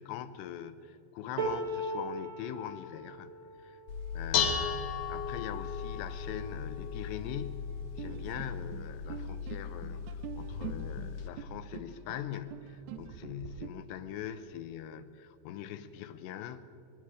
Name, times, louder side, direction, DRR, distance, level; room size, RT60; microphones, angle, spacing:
voice 1, 0.0-3.3 3.6-3.8 4.1-16.6, left 10 dB, 80° left, 12 dB, 2.9 m, -42 dB
sound 1, 1.4-7.5 8.1-8.3 8.6-9.4 10.3-10.4, right 2 dB, 50° right, 2.9 m, -41 dB
Dishes pots and pans, 3.9-11.3, left 6 dB, 60° left, 2.1 m, -36 dB
sound 2, 8.0-13.7, right 11 dB, 80° right, 2.8 m, -45 dB
25.0 x 21.5 x 4.9 m, 2.7 s
omnidirectional pair, 5.1 m